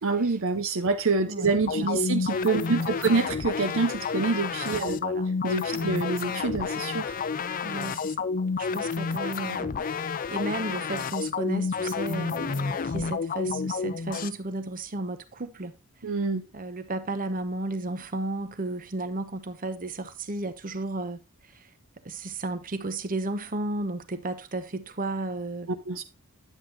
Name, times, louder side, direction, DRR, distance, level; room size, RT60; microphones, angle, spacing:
voice 1, 0.0-5.0 5.4-7.1 16.0-16.4 25.9-26.0, right 4 dB, 60° right, 0.7 m, -26 dB
voice 2, 1.3-2.1 2.6-3.1 4.8-5.3 5.7-5.9 7.6-15.7 16.5-21.2 21.4-21.7 22.0-25.7, right 2 dB, 40° right, 0.9 m, -34 dB
sound 1, 1.7-14.3, left 5 dB, 40° left, 0.4 m, -30 dB
10.0 x 8.0 x 2.7 m
head